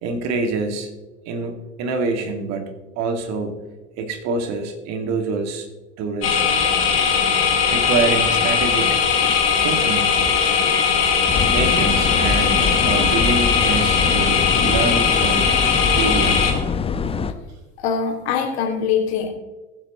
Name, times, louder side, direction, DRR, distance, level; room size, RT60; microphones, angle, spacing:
voice 1, 0.0-0.9 1.3-3.6 4.0-5.7 6.0-6.6 7.7-9.0 9.6-10.2 11.5-15.5 15.9-16.5, right 4 dB, 45° right, 6 dB, 2.2 m, -26 dB
sound 1, 6.2-16.5, left 6 dB, 40° left, 4.5 m, -19 dB
sound 2, 11.3-17.3, left 5 dB, 15° left, 0.8 m, -24 dB
voice 2, 17.8-19.3, left 7 dB, 60° left, 3 dB, 2.5 m, -22 dB
21.0 x 7.8 x 3.1 m, 1.2 s
figure-of-eight pair, 75°, 36 cm